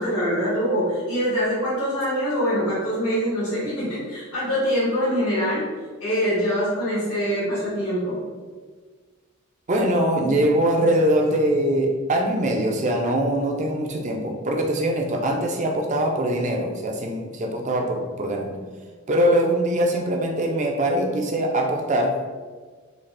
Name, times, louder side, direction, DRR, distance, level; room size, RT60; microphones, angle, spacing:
voice 1, 0.0-5.7 6.0-8.3, equal, 85° left, -12 dB, 1.4 m, -24 dB
voice 2, 9.7-18.6 19.1-22.2, right 1 dB, 35° right, 1 dB, 0.5 m, -22 dB
4.0 x 2.4 x 3.2 m, 1.5 s
head